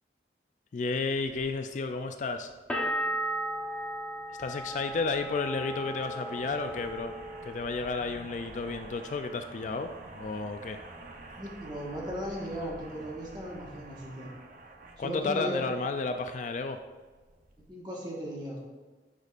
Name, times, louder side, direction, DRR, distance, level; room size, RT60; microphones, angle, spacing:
voice 1, 0.7-2.5 4.4-7.1 7.4-10.8 15.0-16.8, left 4 dB, 45° left, 7 dB, 0.3 m, -32 dB
sound 1, 1.1-17.7, right 2 dB, 45° right, 0.7 m, -49 dB
sound 2, 2.7-8.3 8.6-9.4, right 1 dB, 5° left, 0.9 m, -36 dB
voice 2, 11.4-14.3 15.0-15.6 17.7-18.6, equal, 25° right, -3 dB, 1.3 m, -37 dB
10.0 x 5.1 x 2.5 m, 1.3 s
head